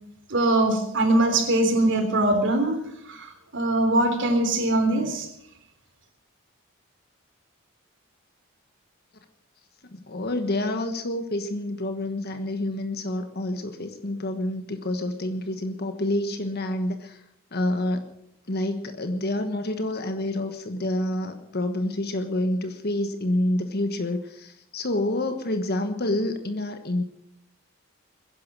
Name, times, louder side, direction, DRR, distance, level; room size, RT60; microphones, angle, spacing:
voice 1, 0.3-2.8 3.1-5.3, right 1 dB, 60° right, 6 dB, 3.5 m, -22 dB
voice 2, 9.9-17.2 17.5-18.1 18.5-27.0, left 1 dB, 50° left, 7 dB, 1.3 m, -28 dB
22.0 x 10.5 x 6.2 m, 0.78 s
head